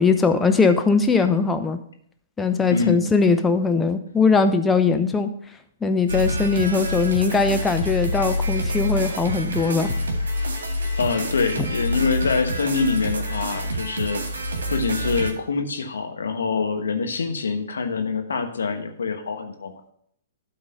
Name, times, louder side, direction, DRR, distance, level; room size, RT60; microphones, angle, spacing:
voice 1, 0.0-1.8 2.4-5.3 5.8-9.9, left 4 dB, 10° left, 7 dB, 0.7 m, -20 dB
voice 2, 2.7-3.0 11.0-14.2 14.7-19.8, left 4 dB, 70° left, 6 dB, 1.1 m, -25 dB
sound 1, 6.1-15.3, left 1 dB, 65° right, 1.8 m, -27 dB
12.0 x 4.0 x 5.3 m, 0.67 s
figure-of-eight pair, 115°, 0 cm